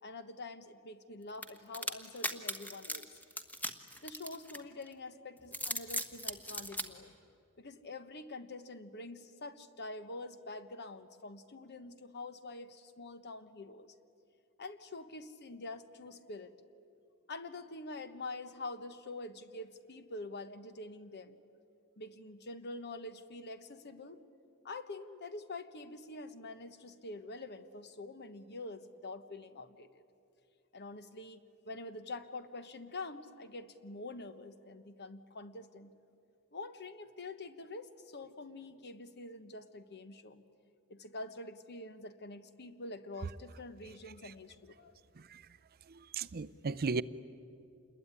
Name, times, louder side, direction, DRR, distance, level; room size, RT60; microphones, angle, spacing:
voice 1, 0.0-3.2 4.0-7.1 7.6-13.9 14.6-16.5 17.3-21.3 22.0-24.2 24.6-29.9 30.7-35.9 36.5-40.4 40.9-45.0, left 2 dB, 50° left, 1.2 m, -46 dB
sound 1, 1.4-4.9 5.4-6.9, equal, 10° left, 1.3 m, -38 dB
voice 2, 45.9-47.0, right 4 dB, 45° right, 0.6 m, -36 dB
27.5 x 21.5 x 9.8 m
head